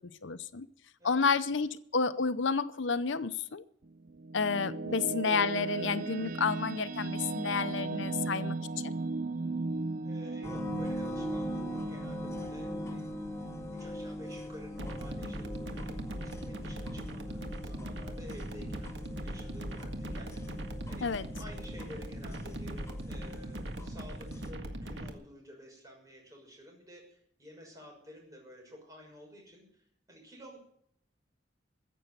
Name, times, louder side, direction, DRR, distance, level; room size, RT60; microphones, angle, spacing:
voice 1, 0.2-0.7 1.0-3.6 4.3-8.6 8.8-8.9 21.0-21.2, left 5 dB, 85° left, 14 dB, 0.7 m, -30 dB
sound 1, 3.8-15.1, right 3 dB, 45° right, 0.5 m, -37 dB
voice 2, 10.0-30.6, equal, 20° right, 0 dB, 6.2 m, -51 dB
sound 2, 10.4-24.5, left 1 dB, 15° left, 0.9 m, -42 dB
sound 3, 14.8-25.1, right 1 dB, 75° right, 1.8 m, -40 dB
15.0 x 7.9 x 9.6 m, 0.69 s
head